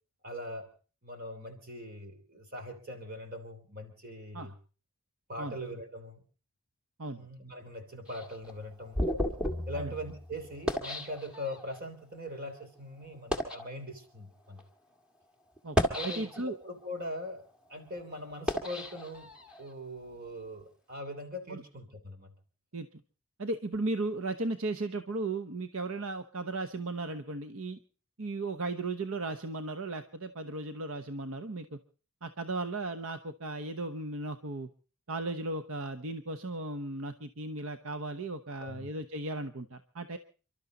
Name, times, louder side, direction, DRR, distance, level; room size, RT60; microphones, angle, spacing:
voice 1, 0.2-0.7 1.0-4.5 5.3-6.2 7.2-9.0 9.6-14.6 15.9-17.4 17.7-19.3 19.6-22.3 38.6-38.9, equal, 40° right, 6 dB, 3.4 m, -41 dB
sound 1, 8.1-11.8 12.5-12.6 13.1-13.7 14.5-14.6 15.6-16.7 17.2-19.7, equal, 5° right, 1.8 m, -34 dB
voice 2, 16.0-16.6 21.5-21.6 22.7-23.0 23.4-27.8 28.2-31.8 32.2-34.7 35.1-40.2, right 2 dB, 65° right, 9 dB, 1.0 m, -36 dB
29.0 x 12.5 x 3.9 m, 0.38 s
head